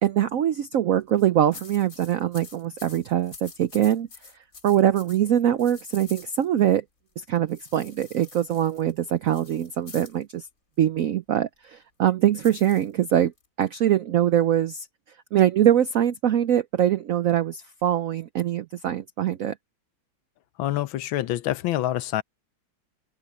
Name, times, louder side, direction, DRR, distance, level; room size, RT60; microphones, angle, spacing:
voice 1, 0.0-4.1 4.6-6.8 7.2-10.5 10.8-13.3 13.6-14.9 15.3-19.5, right 11 dB, 80° right, 0.7 m, -23 dB
sound 1, 1.0-6.7 7.5-10.2 12.4-13.5, left 4 dB, 45° left, 2.4 m, -47 dB
voice 2, 20.6-22.2, left 14 dB, 80° left, 1.5 m, -26 dB
open air
omnidirectional pair, 2.2 m